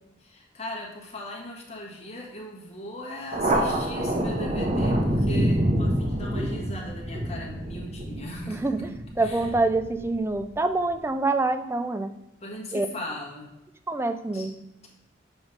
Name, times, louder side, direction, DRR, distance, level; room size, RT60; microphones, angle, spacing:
voice 1, 0.2-8.9 9.2-9.5 12.4-13.5 14.3-14.9, left 1 dB, 35° left, -1 dB, 1.4 m, -39 dB
Thunder, 3.3-10.4, right 1 dB, 40° right, 0.8 m, -27 dB
voice 2, 8.5-8.9 9.2-12.1 12.7-12.9 13.9-14.6, right 2 dB, 15° right, 9 dB, 0.3 m, -26 dB
7.2 x 3.0 x 5.1 m, 0.89 s
head